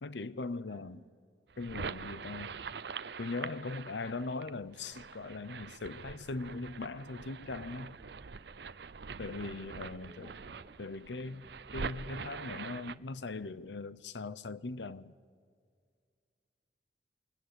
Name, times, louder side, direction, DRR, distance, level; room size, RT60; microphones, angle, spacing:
voice 1, 0.0-1.0 1.6-2.5 3.2-8.0 9.2-10.3 10.8-11.4 11.7-15.1, left 3 dB, 80° left, 0.8 m, -40 dB
voice 2, 0.7-1.1 3.6-3.8 9.2-10.8 11.2-11.5, right 2 dB, 35° right, 1.1 m, -59 dB
sound 1, 1.5-13.0, right 5 dB, 65° right, 0.7 m, -44 dB
28.0 x 21.0 x 9.7 m
head